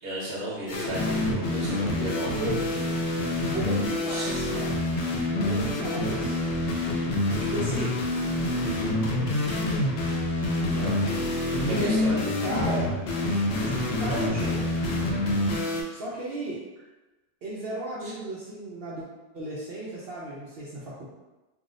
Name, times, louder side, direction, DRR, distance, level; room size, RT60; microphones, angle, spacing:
voice 1, 0.0-2.3 4.1-4.4 10.7-11.1 11.6-12.5, right 1 dB, 50° right, -6 dB, 0.9 m, -34 dB
sound 1, 0.7-15.8, left 1 dB, 65° left, 0.6 m, -27 dB
voice 2, 3.4-4.8 5.3-6.4 7.4-8.0 11.7-12.9 13.6-14.6 15.9-16.6 17.4-19.0 19.3-21.0, right 1 dB, 65° right, -6 dB, 0.6 m, -34 dB
2.7 x 2.0 x 3.7 m, 1.1 s
omnidirectional pair, 1.5 m